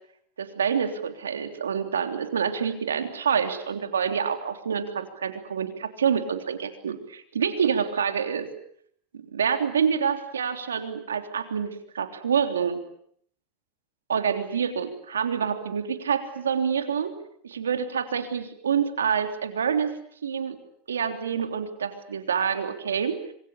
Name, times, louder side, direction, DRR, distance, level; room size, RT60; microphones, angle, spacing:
voice 1, 0.4-8.5 9.1-12.8 14.1-17.2 17.4-20.0 20.2-20.6 20.9-23.2, right 7 dB, 90° right, 7 dB, 3.4 m, -27 dB
26.0 x 23.5 x 8.5 m, 0.66 s
hypercardioid pair, 95°, 0 cm